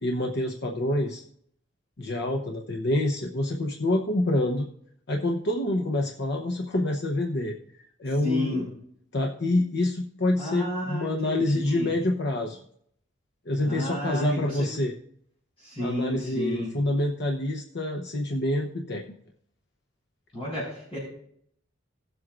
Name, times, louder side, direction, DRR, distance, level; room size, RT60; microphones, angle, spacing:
voice 1, 0.0-1.2 2.0-4.6 5.1-7.6 8.0-8.6 9.1-12.6 13.5-14.9 15.8-19.0, left 1 dB, 60° left, 1 dB, 0.9 m, -27 dB
voice 2, 8.2-8.7 10.4-11.9 13.6-14.7 15.6-16.7 20.3-21.0, left 1 dB, 30° left, -7 dB, 4.6 m, -31 dB
18.0 x 7.9 x 2.5 m, 0.68 s
head